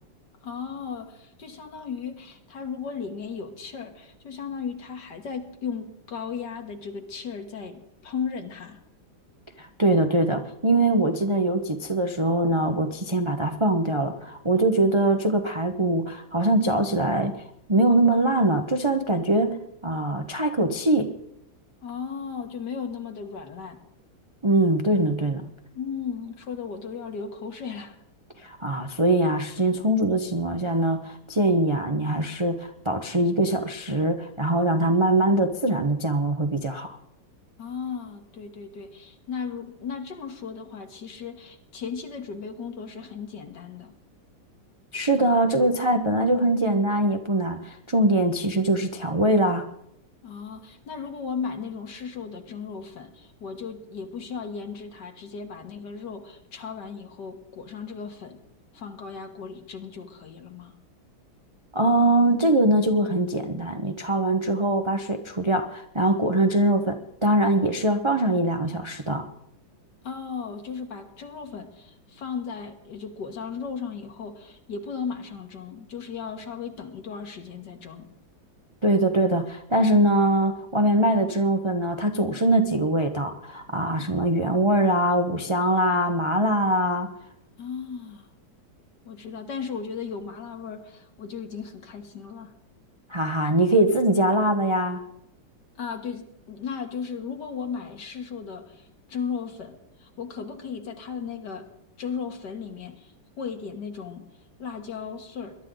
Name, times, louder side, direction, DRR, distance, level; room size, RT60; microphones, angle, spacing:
voice 1, 0.4-8.8 21.8-23.8 25.7-28.0 37.6-43.9 50.2-58.4 58.7-60.7 70.0-78.1 87.6-88.3 89.1-92.5 95.8-101.7 102.0-103.1 103.4-104.2 104.6-105.6, left 6 dB, 65° left, 5 dB, 2.1 m, -36 dB
voice 2, 9.6-17.4 17.7-19.6 19.8-21.1 24.4-25.4 28.4-37.0 44.9-49.7 61.7-69.3 78.8-87.1 93.1-95.0, right 1 dB, 30° right, 5 dB, 0.5 m, -22 dB
21.5 x 12.0 x 3.9 m, 0.79 s
omnidirectional pair, 2.1 m